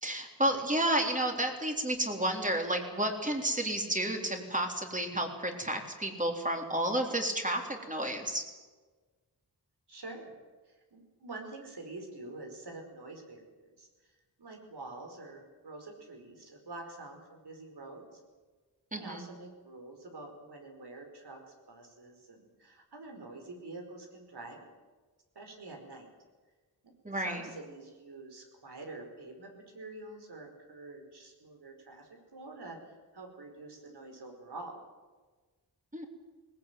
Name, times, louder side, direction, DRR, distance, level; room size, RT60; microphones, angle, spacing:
voice 1, 0.0-8.4 18.9-19.3 27.0-27.4 35.9-36.0, right 1 dB, 20° right, 3 dB, 3.7 m, -31 dB
voice 2, 9.9-10.3 10.7-18.2 18.9-24.6 25.3-26.1 27.2-32.8 33.1-34.8, right 2 dB, 75° right, 4 dB, 4.8 m, -47 dB
20.0 x 19.5 x 9.3 m, 1.3 s
wide cardioid pair, 100°, 40 cm